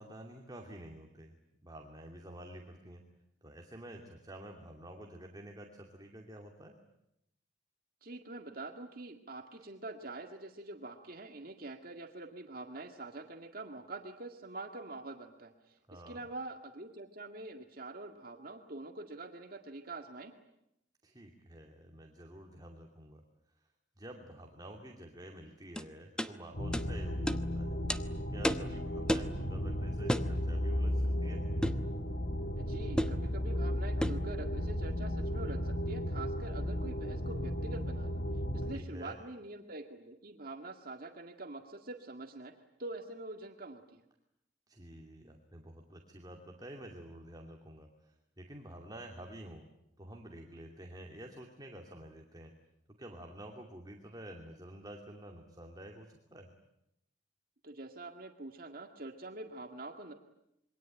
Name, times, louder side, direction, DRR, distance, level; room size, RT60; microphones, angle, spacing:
voice 1, 0.0-1.3 1.6-3.0 3.4-6.8 15.9-16.2 21.0-23.2 24.0-27.7 28.3-31.4 38.7-39.2 44.7-49.7 50.0-52.5 53.0-56.5, right 1 dB, 20° right, 2 dB, 2.7 m, -49 dB
voice 2, 8.0-20.3 32.6-38.2 38.5-42.5 42.8-44.0 57.6-60.1, right 2 dB, 55° right, 3 dB, 2.0 m, -45 dB
sound 1, 25.8-25.9 26.2-26.3 26.7-26.9 27.3-27.4 27.9-28.0 28.4-28.7 29.1-29.3 30.1-30.3 31.6-31.9 33.0-33.2 34.0-34.3, equal, 5° left, 1.0 m, -32 dB
sound 2, 26.5-38.8, equal, 55° left, 2.1 m, -34 dB
27.0 x 23.0 x 9.1 m, 0.83 s
head